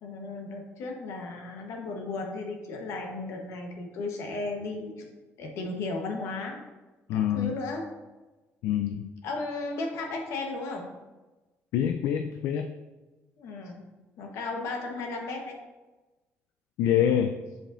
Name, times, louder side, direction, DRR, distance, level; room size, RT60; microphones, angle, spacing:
voice 1, 0.0-4.9 5.4-6.6 7.1-7.9 9.2-10.9 13.4-13.8 14.2-15.6, left 3 dB, 70° left, 2 dB, 1.1 m, -35 dB
voice 2, 7.1-7.6 8.6-9.1 11.7-12.7 16.8-17.4, left 9 dB, 85° left, 6 dB, 0.3 m, -25 dB
7.4 x 5.1 x 2.6 m, 1.1 s
cardioid pair, 165°, 5 cm